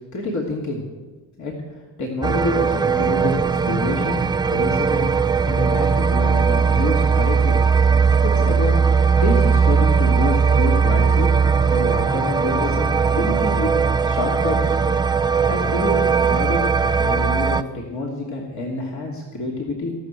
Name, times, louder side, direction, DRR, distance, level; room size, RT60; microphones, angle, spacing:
voice 1, 0.1-0.8 1.4-1.6 2.0-5.1 5.4-7.6 8.2-11.3 11.7-13.7 14.0-14.8 15.4-16.7 17.0-19.9, left 2 dB, 45° left, -2 dB, 3.0 m, -27 dB
sound 1, 2.2-17.6, right 5 dB, 10° right, 0.5 m, -19 dB
18.5 x 6.3 x 8.1 m, 1.3 s
supercardioid pair, 80°, 40 cm